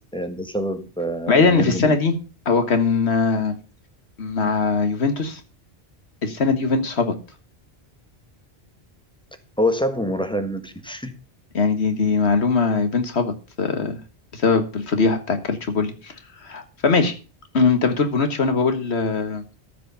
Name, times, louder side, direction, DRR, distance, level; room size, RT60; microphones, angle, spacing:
voice 1, 0.1-1.9 9.6-11.1, equal, 5° left, 8 dB, 1.3 m, -26 dB
voice 2, 1.3-2.2 2.5-3.6 4.2-5.4 6.2-7.1 11.5-14.0 14.3-16.1 16.4-17.1 17.5-19.4, left 4 dB, 80° left, 8 dB, 1.9 m, -21 dB
14.0 x 5.1 x 6.8 m, 0.34 s
omnidirectional pair, 1.1 m